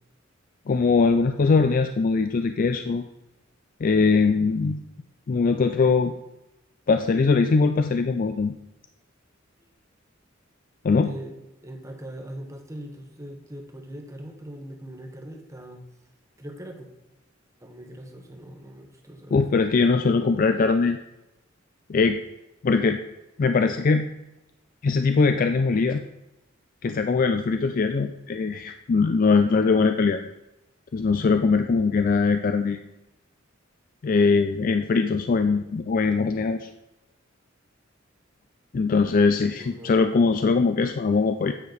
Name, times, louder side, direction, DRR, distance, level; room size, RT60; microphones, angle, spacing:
voice 1, 0.7-3.0 3.8-4.8 5.3-6.1 6.9-8.5 10.8-11.1 19.3-21.0 21.9-22.2 22.6-23.0 23.4-24.1 24.8-26.0 26.8-30.2 30.9-32.8 34.0-36.7 38.7-41.5, left 4 dB, 45° left, 7 dB, 0.4 m, -21 dB
voice 2, 10.9-15.8 16.4-16.9 17.6-19.5 39.6-40.0, right 1 dB, 15° right, 3 dB, 1.1 m, -41 dB
9.2 x 5.2 x 4.0 m, 0.94 s
head